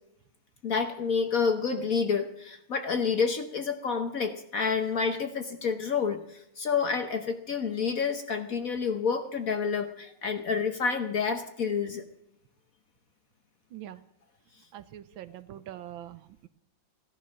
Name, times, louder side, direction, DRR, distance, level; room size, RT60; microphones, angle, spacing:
voice 1, 0.6-12.0, left 5 dB, 50° left, 8 dB, 1.1 m, -29 dB
voice 2, 13.7-14.0 14.7-16.5, right 12 dB, 75° right, 13 dB, 1.5 m, -43 dB
16.5 x 11.5 x 6.3 m, 0.77 s
omnidirectional pair, 2.3 m